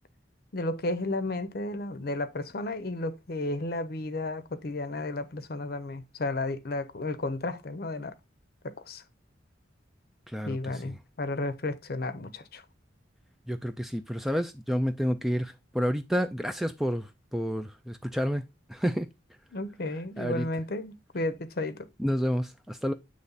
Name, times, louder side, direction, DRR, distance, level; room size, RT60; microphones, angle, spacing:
voice 1, 0.5-8.1 8.6-9.0 10.4-12.6 19.5-21.9, left 2 dB, 55° left, 0.7 m, -33 dB
voice 2, 10.3-10.9 13.5-18.4 18.7-19.1 20.2-20.5 22.0-22.9, equal, ahead, 0.3 m, -30 dB
8.2 x 3.2 x 3.9 m
head